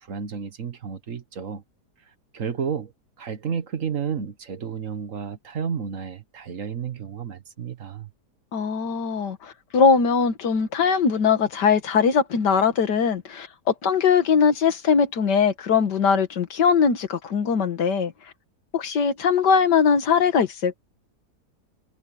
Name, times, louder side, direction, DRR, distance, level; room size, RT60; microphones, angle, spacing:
voice 1, 0.0-1.6 2.3-2.9 3.2-8.1, right 7 dB, 50° right, 1.5 m, -31 dB
voice 2, 8.5-18.1 18.7-20.7, left 6 dB, 85° left, 2.1 m, -21 dB
omnidirectional pair, 1.8 m